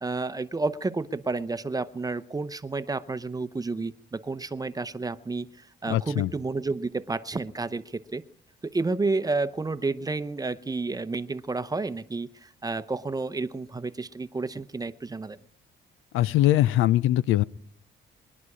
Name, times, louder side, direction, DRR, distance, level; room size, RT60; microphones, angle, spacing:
voice 1, 0.0-8.2 8.6-15.4, right 3 dB, 20° right, 13 dB, 0.7 m, -31 dB
voice 2, 5.9-6.3 16.1-17.4, left 14 dB, 90° left, 19 dB, 0.5 m, -22 dB
22.5 x 11.0 x 4.9 m, 0.66 s
cardioid pair, 90°, 20 cm